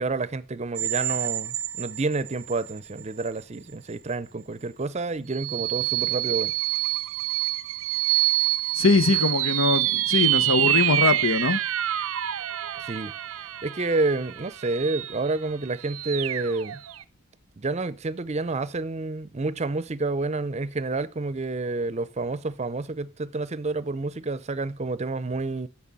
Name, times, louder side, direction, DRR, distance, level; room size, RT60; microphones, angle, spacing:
voice 1, 0.0-6.5 12.8-13.1 13.6-16.8 17.6-25.7, right 3 dB, 35° right, 0.6 m, -29 dB
sound 1, 0.8-2.7 3.2-3.3 5.3-17.0, right 13 dB, 85° right, 0.5 m, -27 dB
voice 2, 8.8-11.6, left 3 dB, 90° left, 1.2 m, -22 dB
12.5 x 6.0 x 7.4 m
head